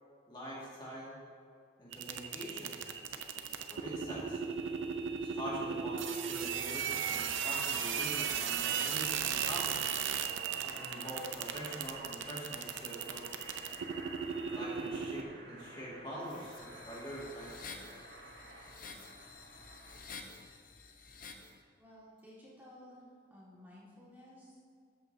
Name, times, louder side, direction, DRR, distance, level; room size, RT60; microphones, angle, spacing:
voice 1, 0.3-1.2 1.8-2.9 3.7-4.4 5.2-9.8 10.5-13.3 14.5-17.7, equal, 25° left, -5 dB, 1.9 m, -44 dB
sound 1, 1.9-15.2, right 7 dB, 90° right, 0.6 m, -36 dB
sound 2, 6.4-20.0, right 1 dB, 65° right, 1.4 m, -52 dB
sound 3, 16.2-21.5, left 4 dB, 45° left, 0.7 m, -50 dB
voice 2, 21.8-23.0 23.3-24.7, left 1 dB, 10° right, -7 dB, 1.7 m, -55 dB
12.5 x 8.2 x 2.7 m, 2.3 s
head